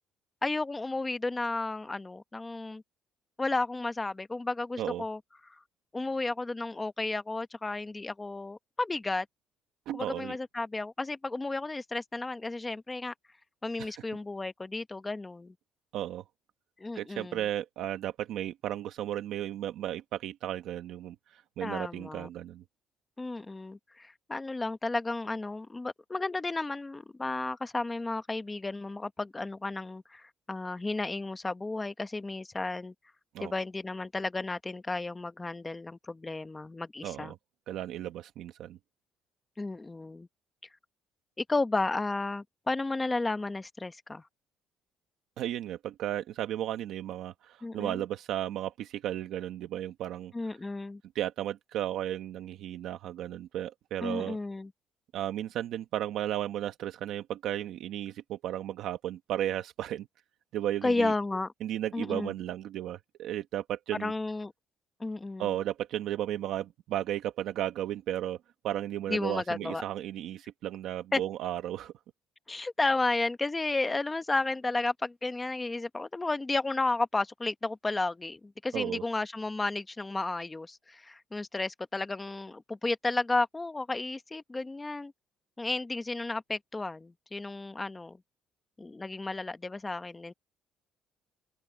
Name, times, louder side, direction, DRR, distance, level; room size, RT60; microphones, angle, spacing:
voice 1, 0.4-2.8 3.4-5.6 5.9-9.3 9.9-13.1 13.6-15.5 16.8-17.4 21.6-22.3 23.2-32.9 33.4-37.3 39.6-40.3 41.4-44.2 47.6-48.0 50.3-51.0 54.0-54.7 60.8-61.5 61.9-62.3 63.9-64.5 65.0-65.6 69.1-69.8 71.1-71.2 72.5-85.1 85.6-88.2 88.8-90.3, left 2 dB, 10° left, 1.0 m, -33 dB
voice 2, 9.9-10.4 13.8-14.0 15.9-16.2 16.9-22.6 33.3-33.5 37.0-37.4 37.7-38.8 45.4-50.3 51.1-54.4 55.1-60.1 60.5-61.1 61.6-64.1 65.4-68.4 68.6-71.9 78.7-79.0, right 12 dB, 65° right, 1.1 m, -34 dB
cardioid pair, 165°, 0 cm